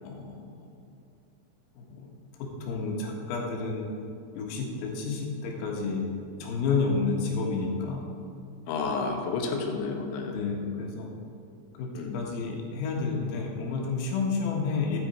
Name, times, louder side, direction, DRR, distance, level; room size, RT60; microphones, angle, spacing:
voice 1, 0.0-0.7 1.8-2.1 2.6-3.9 4.3-6.1 6.4-8.1 8.8-9.0 10.3-11.1 11.8-15.0, left 4 dB, 90° left, 0 dB, 4.3 m, -30 dB
voice 2, 8.7-10.5 11.9-12.2, left 4 dB, 75° left, 2 dB, 3.2 m, -31 dB
13.0 x 9.5 x 4.5 m, 2.6 s
omnidirectional pair, 5.8 m